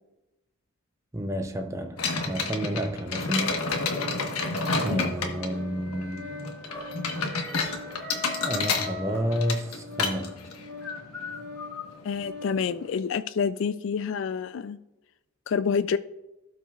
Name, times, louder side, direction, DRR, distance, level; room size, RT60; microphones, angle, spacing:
voice 1, 1.1-2.0 2.2-3.6 4.8-6.3 8.4-10.5, equal, 15° right, 0.6 m, -30 dB
sound 1, 2.0-12.9, left 4 dB, 90° left, 1.2 m, -31 dB
Organ, 3.7-12.7, left 3 dB, 45° right, 0.9 m, -44 dB
sound 2, 5.1-10.0, left 2 dB, 10° left, 2.1 m, -41 dB
voice 2, 12.0-14.8 15.5-16.0, left 6 dB, 60° left, 0.3 m, -28 dB
16.5 x 6.0 x 2.4 m
head